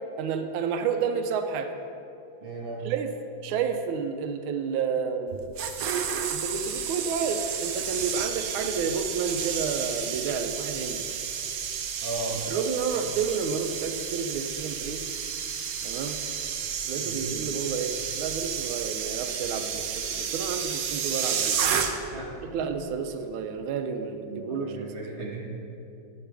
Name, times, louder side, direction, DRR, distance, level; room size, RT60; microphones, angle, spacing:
voice 1, 0.2-1.7 2.8-3.1 3.4-5.5 6.1-11.0 12.5-15.0 15.8-16.2 16.9-21.6 22.5-25.1, right 6 dB, 90° right, 7 dB, 1.4 m, -30 dB
voice 2, 2.4-2.9 8.6-8.7 12.0-12.4 17.0-17.3 22.1-22.6 24.1-25.4, right 2 dB, 30° right, -4 dB, 1.6 m, -37 dB
sound 1, 5.3-22.2 22.5-22.8, right 7 dB, 75° right, 0.8 m, -31 dB
9.4 x 8.6 x 3.4 m, 2.8 s
omnidirectional pair, 2.2 m